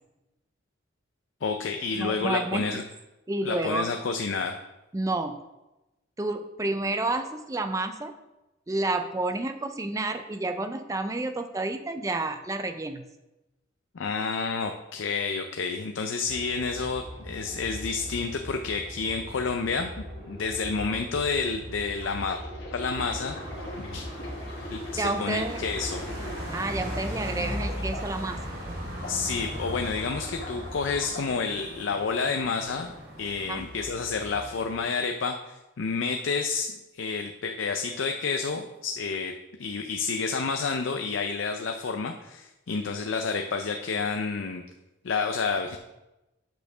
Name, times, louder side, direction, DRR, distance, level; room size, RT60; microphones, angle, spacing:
voice 1, 1.4-2.8 3.4-4.6 13.9-19.9 20.2-22.4 22.7-23.4 23.8-24.1 24.7-26.0 29.1-32.9 33.2-44.6 45.0-45.8, left 4 dB, 75° left, 5 dB, 0.5 m, -29 dB
voice 2, 2.0-2.8 3.3-3.9 4.9-5.4 6.2-8.1 8.7-13.0 25.0-25.6 26.5-28.4 33.5-33.7, right 2 dB, 15° right, 8 dB, 0.4 m, -30 dB
sound 1, 16.3-31.1, equal, 35° right, 2.0 m, -41 dB
sound 2, 21.9-28.4 28.8-31.3 31.9-32.1, left 1 dB, 60° left, 1.8 m, -42 dB
sound 3, 22.9-34.8, equal, 70° right, 2.8 m, -39 dB
8.1 x 4.3 x 6.0 m, 1.0 s
head